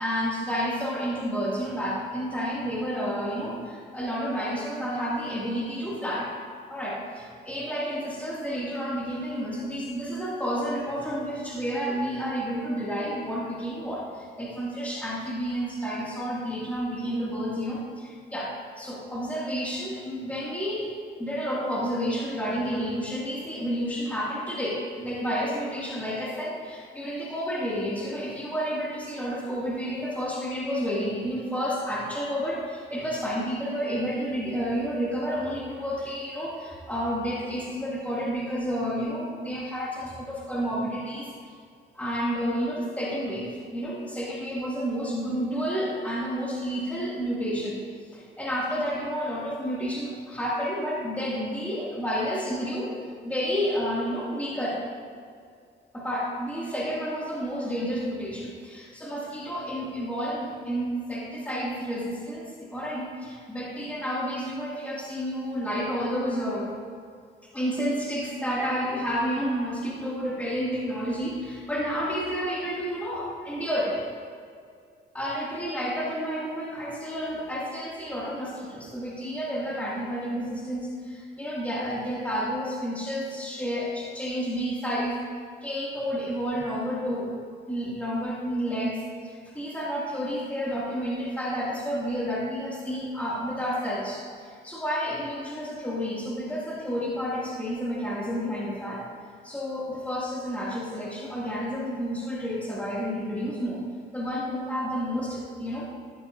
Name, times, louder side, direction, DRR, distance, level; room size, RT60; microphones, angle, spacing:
voice 1, 0.0-6.3 6.7-20.9 21.2-41.3 41.9-47.8 48.1-53.0 53.2-54.8 55.9-66.7 67.5-74.0 75.1-85.2 85.6-87.4 87.7-99.0 99.4-103.8 104.1-105.9, equal, 5° left, -6 dB, 2.6 m, -30 dB
13.0 x 10.5 x 2.8 m, 2.2 s
cardioid pair, 90°, 20 cm